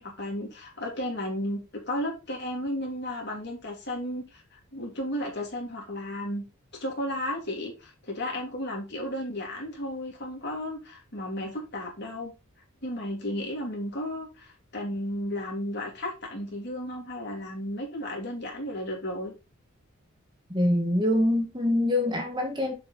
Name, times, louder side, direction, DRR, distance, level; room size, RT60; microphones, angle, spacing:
voice 1, 0.0-6.4 6.8-12.3 12.8-19.3, left 1 dB, 50° left, 3.1 m, -34 dB
voice 2, 20.5-22.7, left 1 dB, 20° right, 1.7 m, -24 dB
7.4 x 5.4 x 4.0 m
head